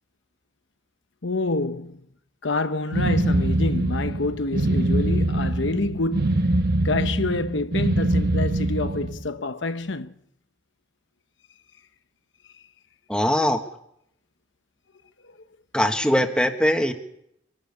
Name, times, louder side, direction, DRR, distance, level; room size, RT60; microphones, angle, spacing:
voice 1, 1.2-2.0 2.4-6.5 6.8-10.1 15.3-15.4, left 2 dB, 75° left, 0.9 m, -27 dB
sound 1, 2.9-9.2, right 1 dB, 55° right, 1.2 m, -23 dB
voice 2, 13.1-13.6 15.7-16.9, left 1 dB, 5° left, 1.5 m, -21 dB
24.5 x 12.0 x 9.7 m
head